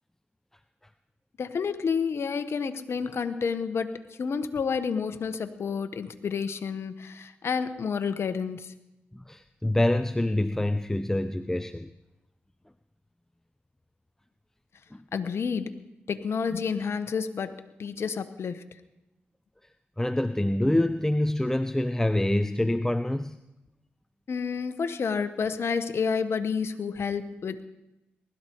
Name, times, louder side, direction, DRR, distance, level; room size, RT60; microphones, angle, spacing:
voice 1, 1.4-8.7 15.1-15.7 16.1-18.7 24.3-27.6, left 6 dB, 60° left, 9 dB, 1.2 m, -30 dB
voice 2, 9.1-11.9 14.9-15.0 20.0-23.4, left 1 dB, 10° left, 11 dB, 0.7 m, -26 dB
20.0 x 12.5 x 4.7 m, 0.94 s
supercardioid pair, 45°, 5 cm